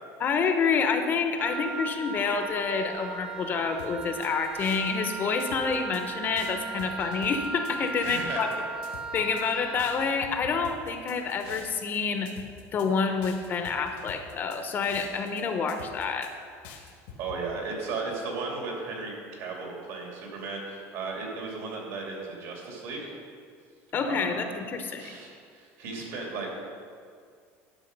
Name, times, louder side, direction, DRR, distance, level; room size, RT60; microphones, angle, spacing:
voice 1, 0.2-8.5 9.1-12.3 12.7-16.3 23.9-25.1, left 5 dB, 35° left, 6 dB, 0.7 m, -28 dB
Wind instrument woodwind instrument, 1.4-10.2, right 3 dB, 5° right, 0.5 m, -37 dB
sound 1, 3.8-5.1 5.4-6.0 6.4-8.6 8.8-9.4 9.8-12.0 12.3-12.9 13.2-15.4 15.7-16.3 16.6-17.4, left 7 dB, 85° left, 1.6 m, -46 dB
voice 2, 8.0-8.4 17.2-23.1 24.1-24.6 25.0-26.5, right 4 dB, 70° right, -1 dB, 2.7 m, -35 dB
11.0 x 6.3 x 5.3 m, 2.2 s
cardioid pair, 145°, 6 cm